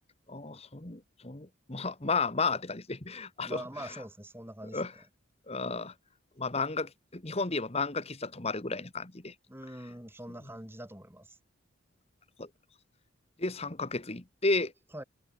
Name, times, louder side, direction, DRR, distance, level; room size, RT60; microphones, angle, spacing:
voice 1, 0.3-3.6 4.7-4.9 5.5-5.9 6.4-9.3 12.4-12.5 13.4-14.7, left 3 dB, 30° left, 1.4 m, -33 dB
voice 2, 3.4-5.1 9.5-11.4 14.9-15.0, right 1 dB, 10° right, 2.7 m, -44 dB
head